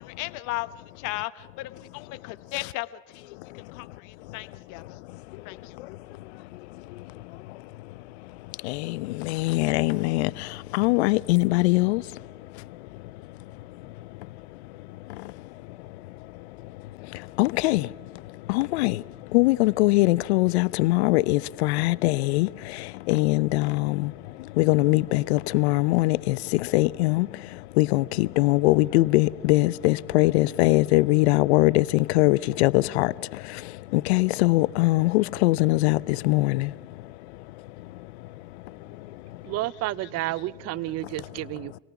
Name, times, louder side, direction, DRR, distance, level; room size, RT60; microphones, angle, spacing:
voice 1, 0.0-4.8 5.4-5.8, left 18 dB, 65° left, 1.0 m, -36 dB
voice 2, 8.6-12.0 17.4-17.9 18.5-19.0 19.3-22.5 22.8-24.1 24.6-27.3 27.8-33.1 33.9-36.7, left 20 dB, 80° left, 0.6 m, -22 dB
voice 3, 39.4-41.8, right 17 dB, 50° right, 0.6 m, -31 dB
26.5 x 18.0 x 5.9 m
hypercardioid pair, 80°, 32 cm